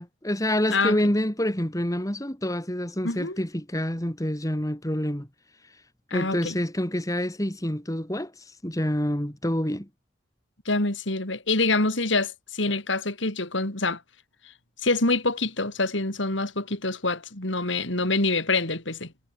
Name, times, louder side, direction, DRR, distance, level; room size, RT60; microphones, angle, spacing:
voice 1, 0.0-5.3 5.6-5.7 6.1-9.9, left 1 dB, 15° left, 2.4 m, -27 dB
voice 2, 3.0-3.4 6.1-6.5 10.7-14.0 14.8-19.1, left 3 dB, 70° left, 4.1 m, -26 dB
head